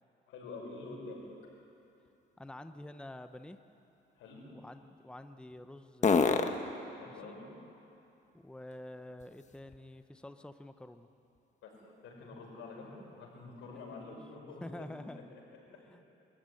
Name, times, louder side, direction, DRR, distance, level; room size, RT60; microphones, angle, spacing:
voice 1, 0.3-1.2 4.1-4.4 7.0-7.5 11.6-11.7 12.0-15.4 15.7-15.8, left 3 dB, 90° left, -2 dB, 6.2 m, -47 dB
sound 1, 1.1-10.1 10.6-14.3, left 5 dB, 35° left, 1.4 m, -38 dB
voice 2, 2.4-3.6 4.5-6.6 7.1-7.3 8.3-11.1 13.7-14.0 14.6-15.2 15.9-16.0, left 1 dB, 5° left, 9 dB, 0.9 m, -48 dB
24.5 x 14.5 x 9.8 m, 2.8 s
cardioid pair, 90°, 20 cm